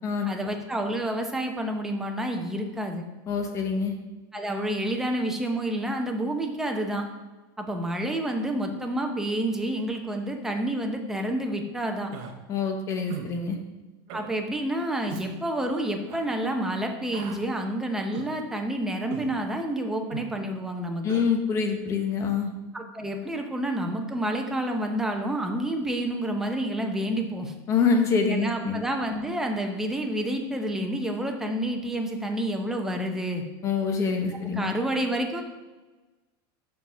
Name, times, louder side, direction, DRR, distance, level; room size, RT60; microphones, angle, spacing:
voice 1, 0.2-3.0 4.3-7.1 7.6-12.1 14.1-21.2 22.7-27.5 28.3-33.4 34.3-35.4, right 1 dB, 5° right, 2 dB, 0.7 m, -29 dB
voice 2, 3.3-3.9 12.5-13.6 21.0-22.5 27.7-28.8 33.6-34.7, left 5 dB, 25° left, 4 dB, 1.0 m, -25 dB
Human voice, 12.1-12.3 13.1-13.3 14.1-14.3 15.1-15.3 16.1-16.2 17.1-17.4 18.1-18.3 19.1-19.3 20.1-20.3 21.1-21.3, right 8 dB, 45° right, 0.9 m, -39 dB
5.8 x 5.1 x 5.5 m, 1.2 s
supercardioid pair, 160°, 12 cm